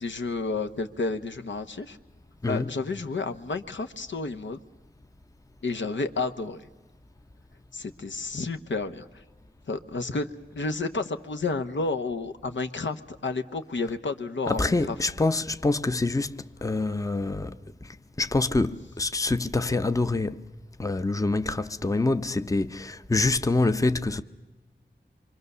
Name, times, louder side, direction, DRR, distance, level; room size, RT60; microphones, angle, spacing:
voice 1, 0.0-2.0 2.5-4.6 5.6-6.7 7.7-9.2 9.7-15.0, left 3 dB, 80° left, 1.1 m, -31 dB
voice 2, 2.4-2.8 14.5-17.6 18.2-20.4 20.8-24.2, left 2 dB, 15° left, 0.7 m, -26 dB
26.0 x 24.0 x 6.8 m
wide cardioid pair, 75°, 19 cm